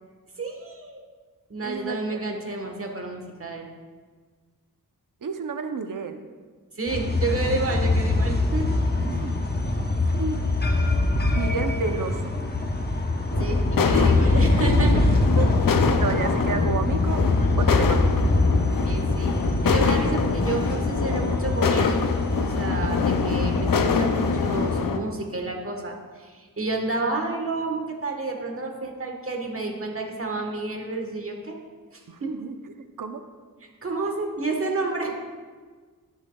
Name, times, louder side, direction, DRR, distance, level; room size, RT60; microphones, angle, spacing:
voice 1, 0.4-1.0 1.5-3.7 6.7-8.8 13.4-14.9 18.8-19.3 19.6-22.0 22.3-31.6 31.9-32.3 33.8-35.2, right 3 dB, 40° right, 2 dB, 1.4 m, -30 dB
voice 2, 1.6-2.2 5.2-6.2 9.1-9.3 10.1-10.5 11.3-12.2 14.8-14.9 15.4-15.5 16.0-17.2 17.6-18.1 32.1-32.5 33.0-33.2, right 5 dB, 65° right, 8 dB, 0.7 m, -31 dB
sound 1, 6.9-24.8, left 2 dB, 30° left, 0.9 m, -23 dB
sound 2, 13.3-25.0, left 5 dB, 70° left, 0.6 m, -26 dB
12.5 x 6.3 x 2.3 m, 1.5 s
wide cardioid pair, 60°, 35 cm